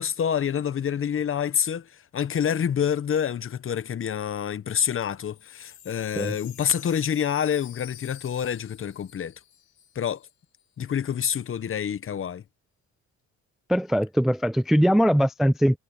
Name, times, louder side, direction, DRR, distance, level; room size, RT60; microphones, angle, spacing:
voice 1, 0.0-9.3 9.9-10.2 10.8-12.4, left 8 dB, 45° left, 0.9 m, -27 dB
Wind chime, 5.1-10.3 10.6-10.7 10.9-11.3, left 11 dB, 70° left, 5.9 m, -48 dB
voice 2, 13.7-15.8, equal, ahead, 0.4 m, -21 dB
cardioid pair, 90°, 30 cm